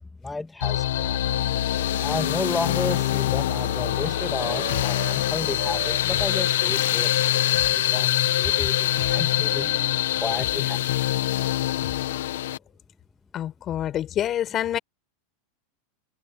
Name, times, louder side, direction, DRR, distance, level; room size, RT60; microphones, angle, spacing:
voice 1, 0.2-1.2 2.0-9.7 10.2-10.8, left 3 dB, 10° left, 2.3 m, -32 dB
sound 1, 0.6-12.6, left 13 dB, 85° left, 1.7 m, -24 dB
Wind instrument woodwind instrument, 1.2-5.2 5.6-10.0, right 27 dB, 55° right, 4.9 m, -42 dB
sound 2, 3.3-3.5 4.7-4.9 6.1-6.3 7.5-7.7 9.0-9.2 10.4-10.6 11.8-12.0, left 18 dB, 70° left, 6.5 m, -35 dB
voice 2, 13.3-14.8, left 11 dB, 30° left, 4.6 m, -27 dB
supercardioid pair, 145°, 0 cm